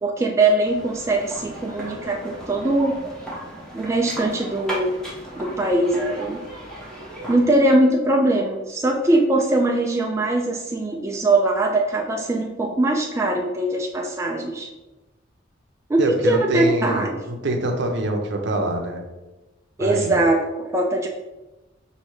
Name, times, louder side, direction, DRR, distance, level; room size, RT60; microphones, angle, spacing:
voice 1, 0.0-3.0 3.7-5.0 5.4-6.4 7.3-14.7 15.9-17.2 19.8-21.1, right 2 dB, 15° right, 0 dB, 0.3 m, -21 dB
sound 1, 0.6-7.8, right 1 dB, 5° left, 1.0 m, -35 dB
voice 2, 16.0-19.0 19.8-20.2, right 1 dB, 60° right, 3 dB, 0.7 m, -24 dB
5.5 x 2.7 x 3.1 m, 1.1 s
head